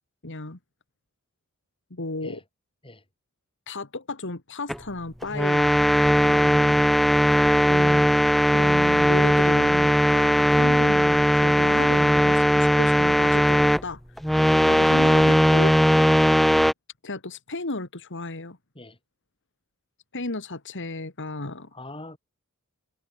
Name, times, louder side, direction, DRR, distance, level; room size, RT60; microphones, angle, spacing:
voice 1, 0.2-0.6 1.9-2.4 3.7-5.8 6.2-6.9 7.7-8.0 8.5-14.0 14.6-15.8 17.0-18.6 20.1-21.7, left 2 dB, 55° left, 2.5 m, -33 dB
sound 1, 4.7-4.8 5.2-13.8 14.2-16.7, equal, ahead, 0.8 m, -19 dB
voice 2, 21.7-22.2, left 2 dB, 25° left, 5.6 m, -42 dB
head